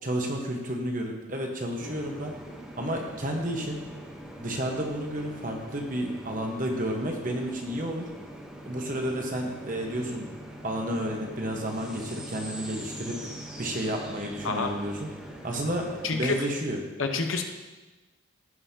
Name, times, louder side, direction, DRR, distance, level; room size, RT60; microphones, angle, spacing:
voice 1, 0.0-2.3 2.8-3.8 4.4-8.1 8.6-10.3 10.6-13.2 13.6-15.1 15.4-16.8, equal, 40° right, 1 dB, 1.2 m, -31 dB
sound 1, 1.8-16.3, right 1 dB, 5° right, 0.9 m, -43 dB
voice 2, 16.0-16.5 17.0-17.4, left 4 dB, 70° left, 4 dB, 0.9 m, -28 dB
15.5 x 5.6 x 2.8 m, 1.2 s
head